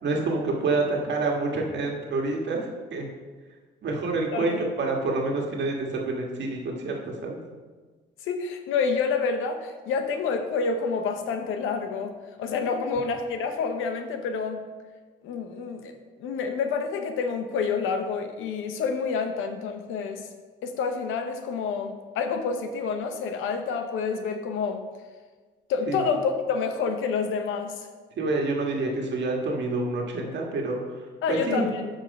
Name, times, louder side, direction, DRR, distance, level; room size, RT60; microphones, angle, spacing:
voice 1, 0.0-3.1 3.8-7.4 25.9-26.0 28.2-31.7, right 3 dB, 65° right, 0 dB, 1.6 m, -28 dB
voice 2, 8.2-14.6 15.2-20.3 20.6-24.8 25.7-27.9 31.2-31.9, left 5 dB, 90° left, 7 dB, 0.8 m, -28 dB
7.1 x 5.0 x 5.4 m, 1.4 s
cardioid pair, 90°, 20 cm